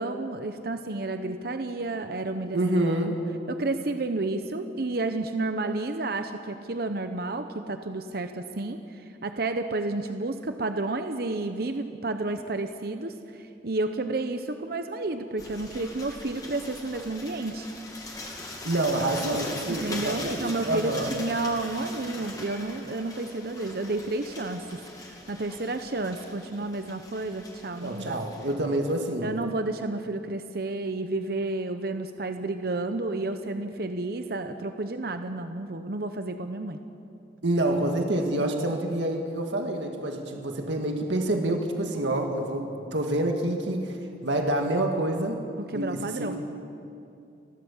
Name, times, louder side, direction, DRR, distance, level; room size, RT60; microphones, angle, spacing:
voice 1, 0.0-2.6 3.1-3.2 3.5-17.7 19.7-24.8 25.3-28.2 29.2-36.8 45.6-46.4, right 2 dB, 60° right, 7 dB, 0.8 m, -31 dB
voice 2, 2.5-3.2 18.6-21.1 27.8-29.3 37.4-44.0 44.2-45.4 45.7-46.4, right 1 dB, 90° right, 3 dB, 1.9 m, -27 dB
sound 1, 15.4-28.6, left 2 dB, 20° left, 2.6 m, -41 dB
30.0 x 12.0 x 7.2 m, 2.6 s
head